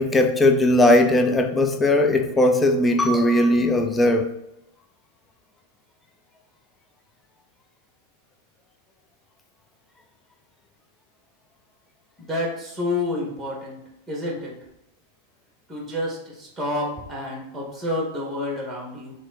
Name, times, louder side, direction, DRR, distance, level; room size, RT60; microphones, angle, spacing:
voice 1, 0.0-4.3, left 1 dB, 15° left, 0.7 m, -18 dB
voice 2, 12.2-13.8 14.1-14.5 15.7-19.1, left 1 dB, 5° right, 2.4 m, -29 dB
7.8 x 3.8 x 4.3 m
figure-of-eight pair, 90°, 0 cm